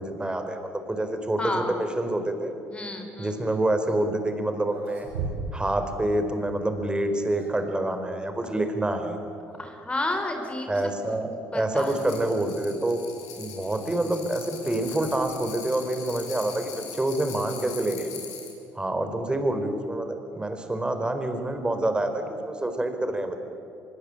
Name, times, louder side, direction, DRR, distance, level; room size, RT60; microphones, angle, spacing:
voice 1, 0.0-2.5 3.2-5.1 5.5-9.2 10.7-11.3 11.5-13.0 13.3-18.1 18.7-23.4, right 1 dB, 15° right, 7 dB, 4.5 m, -27 dB
voice 2, 1.4-1.8 2.7-3.4 8.4-8.5 9.6-10.7 11.0-11.3 11.5-12.0, left 2 dB, 20° left, 4 dB, 4.1 m, -31 dB
sound 1, 4.6-5.7 6.0-6.1 7.0-7.7 9.5-9.7 10.1-10.4 10.7-10.8 11.6-11.7 13.4-15.6, right 4 dB, 85° right, 6.5 m, -39 dB
sound 2, 11.8-18.5, left 7 dB, 65° left, 6.4 m, -42 dB
25.0 x 22.0 x 8.9 m, 2.7 s
hypercardioid pair, 60°, 6 cm